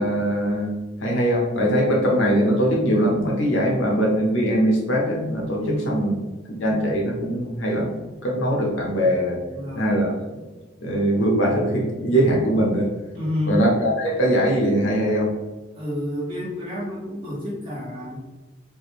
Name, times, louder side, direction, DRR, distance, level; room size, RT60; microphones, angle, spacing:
voice 1, 0.0-6.1 6.6-9.4 9.8-10.2 10.8-12.9 13.5-15.3, equal, 75° left, -1 dB, 0.8 m, -21 dB
voice 2, 5.6-6.2 9.5-9.9 13.1-13.6 15.7-18.2, left 1 dB, 25° right, -6 dB, 1.1 m, -29 dB
3.5 x 2.5 x 3.1 m, 1.2 s
head